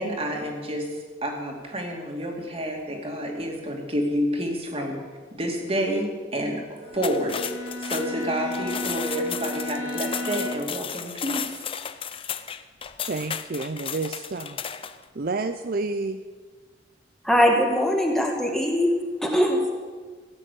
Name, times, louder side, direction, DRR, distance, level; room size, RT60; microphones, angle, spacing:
voice 1, 0.0-5.0 5.3-6.1 6.3-11.5, equal, 35° right, 1 dB, 2.6 m, -29 dB
Bowed string instrument, 6.8-10.9, left 2 dB, 85° right, 2.5 m, -34 dB
sound 1, 6.9-15.0, left 8 dB, 30° left, 0.6 m, -34 dB
voice 2, 13.0-14.6 15.1-16.2, right 3 dB, 55° right, 9 dB, 0.5 m, -29 dB
voice 3, 17.3-18.9 19.2-19.8, equal, ahead, 0 dB, 2.0 m, -21 dB
16.5 x 8.9 x 8.3 m, 1.5 s
head